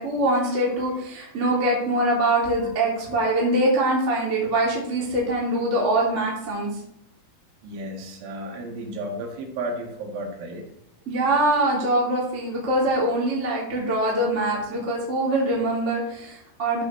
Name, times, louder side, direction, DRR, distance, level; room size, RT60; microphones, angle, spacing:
voice 1, 0.0-6.7 11.1-16.8, right 1 dB, 20° right, -4 dB, 2.2 m, -23 dB
voice 2, 7.6-10.6, right 1 dB, 85° right, 1 dB, 4.3 m, -33 dB
14.0 x 6.2 x 3.4 m, 0.79 s
omnidirectional pair, 5.2 m